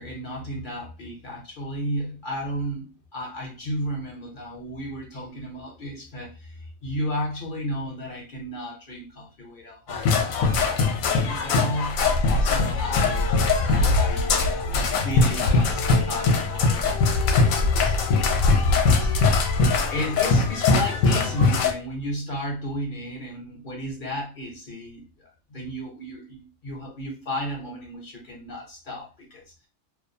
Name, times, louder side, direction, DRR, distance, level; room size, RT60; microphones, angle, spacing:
voice 1, 0.0-10.2 10.5-10.9 11.3-13.3 13.6-14.3 14.7-18.0 18.3-29.7, equal, 50° left, 0 dB, 0.6 m, -34 dB
sound 1, 9.9-21.7, left 3 dB, 75° left, 1.0 m, -21 dB
2.5 x 2.3 x 2.6 m, 0.30 s
omnidirectional pair, 1.5 m